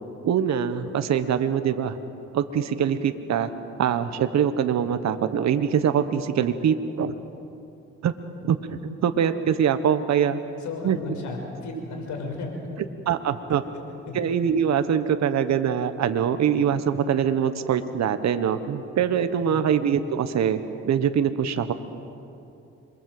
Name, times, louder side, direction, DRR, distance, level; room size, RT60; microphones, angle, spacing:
voice 1, 0.2-2.0 2.3-3.5 3.8-7.2 8.0-8.1 8.4-10.4 10.8-11.0 13.1-13.6 14.1-20.6 20.8-21.7, right 8 dB, 60° right, 9 dB, 1.3 m, -23 dB
voice 2, 10.6-12.5 13.5-13.6 14.1-14.2 19.4-19.6, left 4 dB, 75° left, 2 dB, 5.9 m, -34 dB
27.5 x 22.5 x 7.9 m, 2.7 s
cardioid pair, 90°, 30 cm